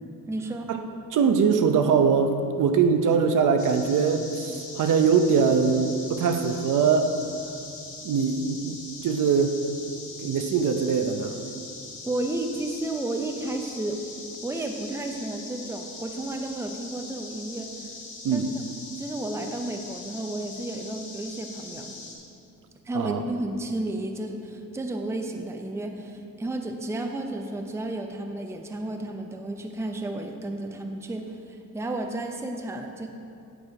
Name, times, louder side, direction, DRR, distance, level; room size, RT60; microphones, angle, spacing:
voice 1, 0.3-0.7 12.1-14.0 14.4-17.9 18.3-18.6 18.9-22.0 22.8-33.1, right 2 dB, 10° right, 4 dB, 0.5 m, -32 dB
voice 2, 1.1-7.2 8.0-8.8 9.0-9.6 10.2-11.4 18.2-18.5 22.9-23.2, right 6 dB, 60° right, 7 dB, 0.7 m, -22 dB
sound 1, 3.6-22.2, left 3 dB, 55° left, 2.0 m, -41 dB
8.1 x 6.8 x 4.7 m, 2.5 s
cardioid pair, 120°, 35 cm